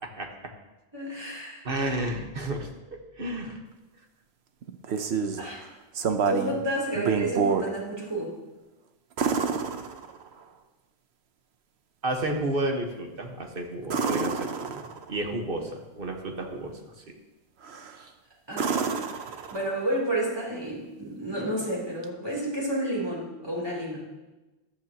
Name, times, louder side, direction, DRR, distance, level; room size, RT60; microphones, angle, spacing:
voice 1, 0.9-1.6 5.4-5.7 6.2-8.3 18.5-19.0 19.5-24.0, right 1 dB, 25° right, -4 dB, 3.4 m, -30 dB
voice 2, 1.7-3.6 12.0-16.8 18.0-18.1, right 1 dB, 60° right, 2 dB, 1.6 m, -32 dB
sound 1, 4.6-5.5 5.9-6.6 6.9-7.7 9.2-10.4 13.8-15.2 17.6-18.0 18.5-19.9 22.0-22.1, right 6 dB, 85° right, 1.1 m, -28 dB
14.0 x 12.5 x 2.9 m, 1.1 s
omnidirectional pair, 1.1 m